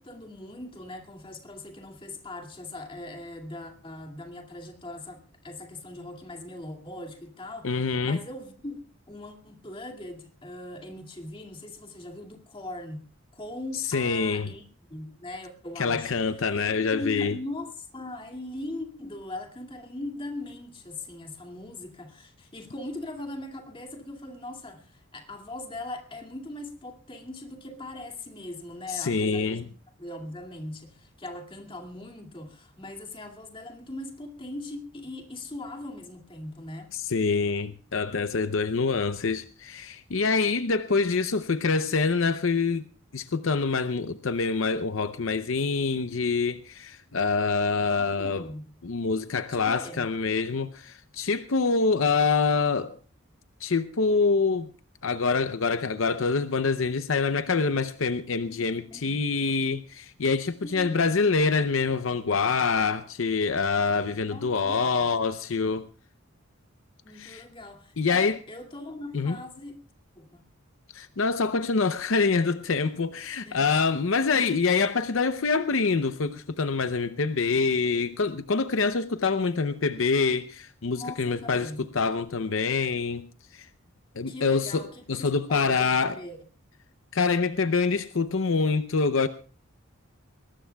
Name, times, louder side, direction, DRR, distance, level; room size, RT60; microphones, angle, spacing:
voice 1, 0.0-8.8 9.1-13.1 13.3-29.7 30.0-36.9 47.8-48.7 49.5-50.1 58.9-59.3 60.6-61.1 64.3-65.1 67.0-69.8 70.2-70.4 73.4-73.7 80.8-81.9 84.3-86.4, left 1 dB, 25° left, 2.3 m, -40 dB
voice 2, 7.6-8.2 13.7-14.5 15.8-17.4 28.9-29.6 36.9-42.8 43.1-48.5 48.8-53.0 53.6-54.7 55.0-65.8 67.1-67.4 68.0-68.4 69.1-69.4 70.9-83.7 84.2-86.2 87.1-89.3, left 4 dB, 70° left, 0.7 m, -26 dB
22.5 x 19.0 x 2.3 m
head